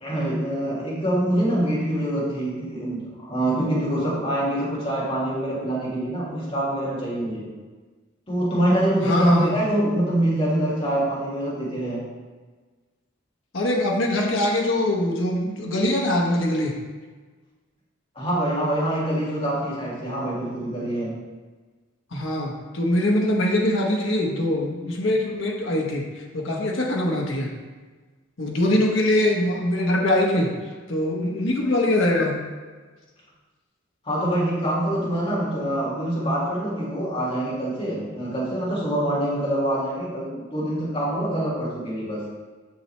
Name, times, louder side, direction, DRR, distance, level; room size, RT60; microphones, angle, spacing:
voice 1, 0.0-7.4 8.3-12.1 18.2-21.1 34.0-42.2, right 1 dB, 30° left, -7 dB, 2.1 m, -25 dB
voice 2, 9.0-9.5 13.5-16.7 22.1-26.0 26.3-27.5 28.4-30.5 30.9-32.3, left 1 dB, 70° left, 0 dB, 1.1 m, -22 dB
6.3 x 6.1 x 3.3 m, 1.4 s
head